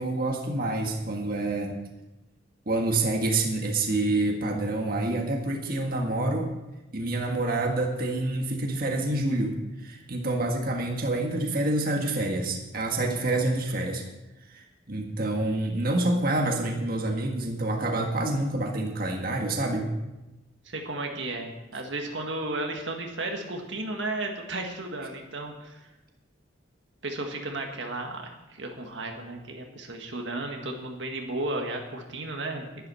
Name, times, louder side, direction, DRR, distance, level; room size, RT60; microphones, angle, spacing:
voice 1, 0.0-1.7 2.6-6.5 6.9-14.0 14.4-19.9, right 2 dB, 50° right, 1 dB, 1.6 m, -27 dB
voice 2, 20.7-25.8 27.0-32.7, right 2 dB, 75° right, 2 dB, 1.7 m, -34 dB
11.5 x 11.0 x 5.6 m, 1.0 s
head